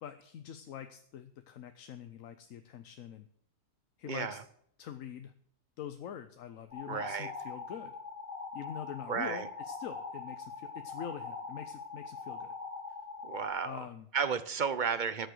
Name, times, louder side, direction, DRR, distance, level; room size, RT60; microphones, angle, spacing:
voice 1, 0.0-3.3 4.0-4.4 4.8-5.3 5.8-7.9 8.5-12.5 13.6-14.1, left 10 dB, 70° left, 9 dB, 1.1 m, -44 dB
voice 2, 4.1-4.4 6.9-7.3 9.1-9.5 13.2-13.9 14.1-15.3, right 6 dB, 45° right, 14 dB, 0.7 m, -33 dB
sound 1, 6.7-13.5, left 4 dB, 35° left, 5.2 m, -42 dB
13.0 x 6.9 x 7.7 m, 0.67 s
omnidirectional pair, 1.5 m